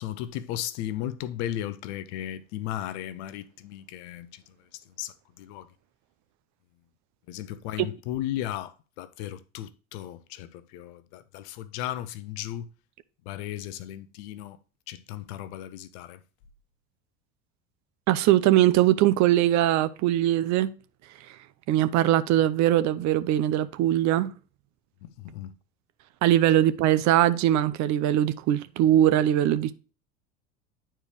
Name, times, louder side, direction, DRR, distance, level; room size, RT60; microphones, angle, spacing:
voice 1, 0.0-4.4 5.0-5.7 7.3-12.7 13.3-14.6 14.9-16.2 25.0-25.5, left 12 dB, 60° left, 0.8 m, -35 dB
voice 2, 18.1-20.7 21.3-21.4 21.7-24.3 26.2-29.7, right 13 dB, 45° right, 0.7 m, -21 dB
9.7 x 4.5 x 3.1 m
hypercardioid pair, 70°, 38 cm